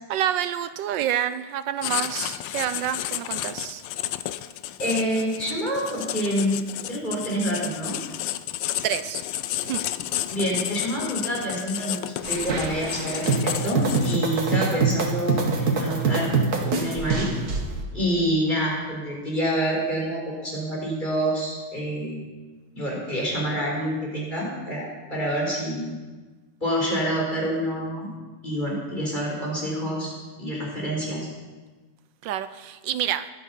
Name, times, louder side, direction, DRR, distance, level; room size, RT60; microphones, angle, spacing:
voice 1, 0.1-3.8 8.8-9.3 9.6-9.8 32.2-33.2, right 11 dB, 80° right, 12 dB, 1.3 m, -28 dB
Writing, 1.8-14.4, left 13 dB, 85° left, 1.3 m, -32 dB
voice 2, 4.8-8.0 10.3-17.3 17.9-22.2 22.7-25.9 26.6-28.1 28.4-30.1 30.4-31.2, equal, 25° left, -3 dB, 4.2 m, -27 dB
sound 1, 12.2-17.7, right 4 dB, 55° right, 2.1 m, -24 dB
21.0 x 8.5 x 5.7 m, 1.3 s
omnidirectional pair, 2.0 m